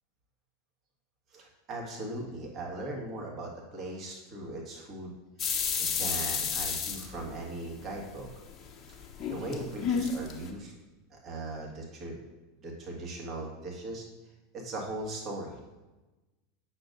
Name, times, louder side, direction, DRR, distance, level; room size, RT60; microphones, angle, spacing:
voice 1, 1.3-5.2 5.5-8.3 9.3-10.7 11.1-12.2 12.6-14.0 14.5-15.6, right 2 dB, 35° right, -2 dB, 1.6 m, -39 dB
sound 1, 5.4-7.8 8.2-10.5, left 6 dB, 35° left, 0.9 m, -31 dB
8.3 x 6.1 x 2.6 m, 1.1 s
figure-of-eight pair, 85°, 0 cm